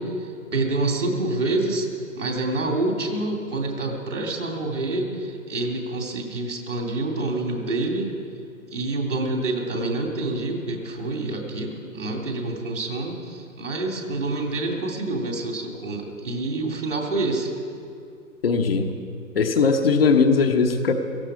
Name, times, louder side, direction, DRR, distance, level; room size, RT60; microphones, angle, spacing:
voice 1, 0.0-1.9 2.1-8.1 8.7-17.5, right 2 dB, 60° right, 2 dB, 3.0 m, -27 dB
voice 2, 18.4-18.9 19.3-20.9, left 5 dB, 45° left, 5 dB, 1.1 m, -19 dB
17.5 x 15.0 x 5.0 m, 2.5 s
figure-of-eight pair, 130°, 42 cm